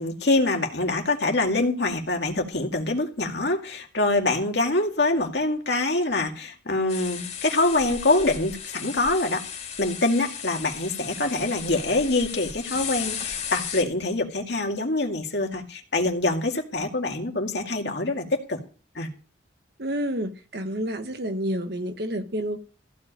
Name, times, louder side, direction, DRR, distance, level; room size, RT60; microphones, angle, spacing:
voice 1, 0.0-9.4 9.8-18.6 19.0-19.1, left 2 dB, 65° left, 2.2 m, -25 dB
sound 1, 6.9-13.8, left 7 dB, 35° left, 3.5 m, -35 dB
voice 2, 19.8-22.6, equal, 55° right, 1.3 m, -29 dB
15.0 x 5.2 x 9.1 m
head